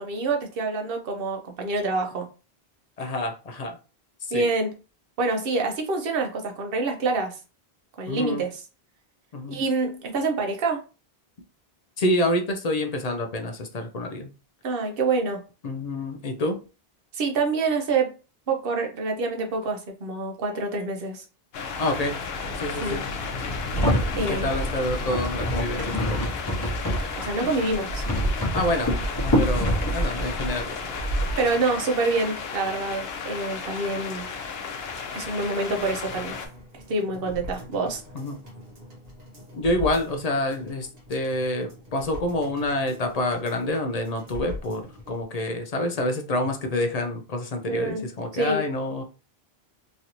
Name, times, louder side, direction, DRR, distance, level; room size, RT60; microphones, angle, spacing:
voice 1, 0.0-2.3 4.3-4.7 5.2-7.3 8.0-8.6 9.5-10.8 14.6-15.4 17.1-18.1 18.5-21.2 22.8-23.0 24.2-24.5 27.2-28.0 31.4-34.3 35.1-36.3 36.9-38.0 47.7-48.6, right 3 dB, 65° right, 0.9 m, -26 dB
voice 2, 3.0-3.8 4.3-4.4 8.1-8.4 9.3-9.6 12.0-14.3 15.6-16.6 21.8-22.1 22.6-23.0 24.2-26.3 28.5-28.9 29.2-31.0 38.1-38.4 39.5-44.8 45.1-49.0, left 1 dB, 50° left, 0.5 m, -27 dB
sound 1, 21.5-36.5, left 4 dB, 75° left, 0.9 m, -33 dB
sound 2, 23.7-31.5, equal, 25° left, 0.8 m, -27 dB
sound 3, 35.8-45.2 45.6-45.7, left 3 dB, 40° right, 1.3 m, -42 dB
3.1 x 2.6 x 2.9 m
omnidirectional pair, 1.0 m